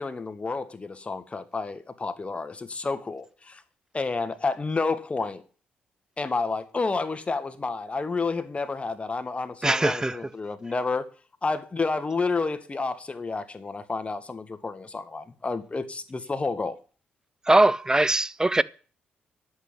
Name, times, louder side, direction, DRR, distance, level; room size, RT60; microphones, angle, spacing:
voice 1, 0.0-3.6 3.9-5.4 6.2-11.1 11.4-16.8, left 3 dB, 30° left, 1.9 m, -30 dB
voice 2, 9.6-10.2 17.5-18.6, right 2 dB, 15° right, 0.8 m, -21 dB
11.0 x 8.2 x 8.1 m
supercardioid pair, 60°, 4 cm